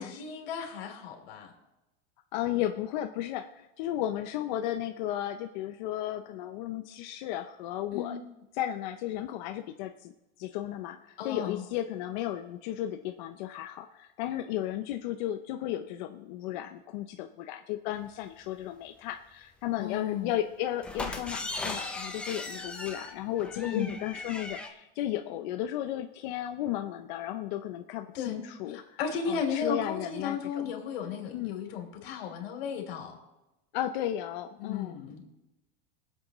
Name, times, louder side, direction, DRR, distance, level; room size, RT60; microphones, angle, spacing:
voice 1, 0.0-1.5 7.9-8.1 11.2-11.6 19.8-20.3 23.6-23.9 28.1-28.4 28.7-33.2 34.6-35.2, left 6 dB, 80° left, 2 dB, 3.2 m, -35 dB
voice 2, 2.3-8.2 8.5-10.1 10.4-29.0 29.3-30.7 31.3-31.6 33.7-35.0, left 12 dB, 50° left, 5 dB, 0.6 m, -34 dB
sound 1, 20.8-24.7, left 2 dB, 5° left, 0.5 m, -38 dB
22.5 x 7.9 x 3.0 m, 0.98 s
supercardioid pair, 170°, 30 cm